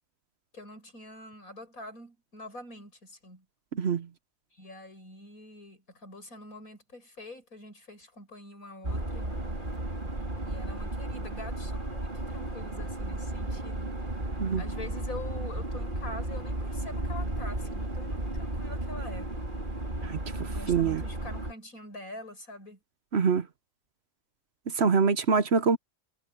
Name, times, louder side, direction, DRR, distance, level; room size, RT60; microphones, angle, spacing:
voice 1, 0.5-3.4 4.5-9.3 10.4-14.0 14.6-19.3 20.5-22.8, left 2 dB, 85° left, 8.1 m, -45 dB
voice 2, 3.7-4.1 14.4-14.6 20.0-21.0 23.1-23.5 24.7-25.8, right 5 dB, 55° right, 1.1 m, -25 dB
sound 1, 8.8-21.5, right 1 dB, 35° right, 3.4 m, -34 dB
omnidirectional pair, 1.5 m